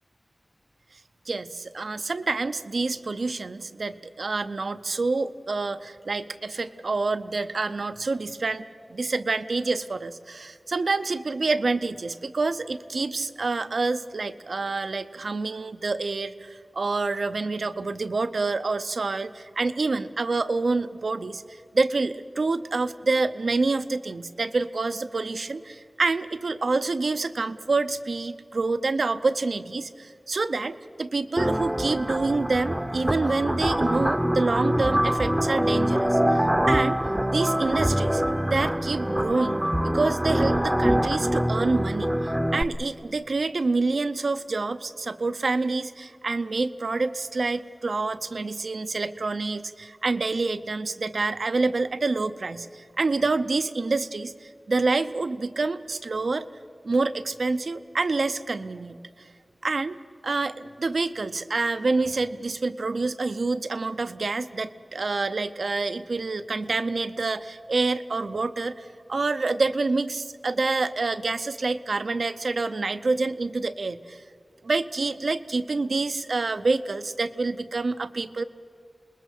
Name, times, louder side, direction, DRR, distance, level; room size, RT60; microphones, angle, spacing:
voice 1, 1.3-8.6 8.9-37.0 37.3-38.2 38.5-56.5 56.8-59.3 59.6-60.0 60.2-74.2 74.6-78.4, right 3 dB, 80° right, 11 dB, 0.7 m, -27 dB
sound 1, 31.4-42.6, equal, 10° right, 0.8 m, -24 dB
28.0 x 20.5 x 6.6 m, 2.2 s
wide cardioid pair, 50°, 0 cm